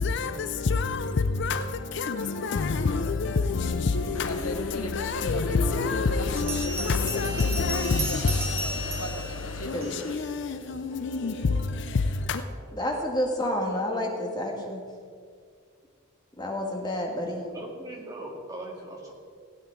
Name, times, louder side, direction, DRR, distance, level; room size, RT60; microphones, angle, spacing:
voice 1, 0.0-12.4, left 4 dB, 55° left, 0.5 m, -28 dB
sound 1, 2.2-12.6, right 1 dB, 75° right, 2.4 m, -46 dB
sound 2, 4.1-10.2, left 2 dB, 80° left, 0.9 m, -37 dB
voice 2, 4.2-5.2 5.5-6.5 8.9-9.2 17.5-19.1, right 1 dB, 15° right, 2.0 m, -40 dB
Bell, 6.4-10.2, right 2 dB, 45° right, 1.8 m, -35 dB
voice 3, 9.7-10.1 12.7-14.8 16.4-17.4, left 1 dB, 20° left, 1.5 m, -29 dB
16.0 x 8.9 x 4.4 m
head